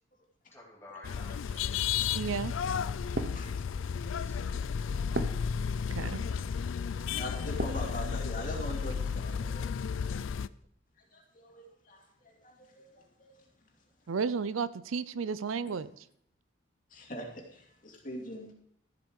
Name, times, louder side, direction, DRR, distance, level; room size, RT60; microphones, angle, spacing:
voice 1, 0.5-1.7 3.6-4.6, left 2 dB, 10° left, 2.8 m, -52 dB
sound 1, 1.0-10.5, left 6 dB, 80° left, 0.4 m, -33 dB
sound 2, 1.4-7.9 8.4-9.1, right 2 dB, 50° right, 0.8 m, -41 dB
voice 2, 2.1-2.5 5.9-6.3 14.1-15.9, right 5 dB, 90° right, 0.5 m, -33 dB
voice 3, 3.2-4.0 5.9-6.3 6.8-9.7 11.1-13.4 14.0-14.1 15.6-15.7 16.9-18.5, equal, 40° left, 2.6 m, -43 dB
13.5 x 7.6 x 4.7 m
head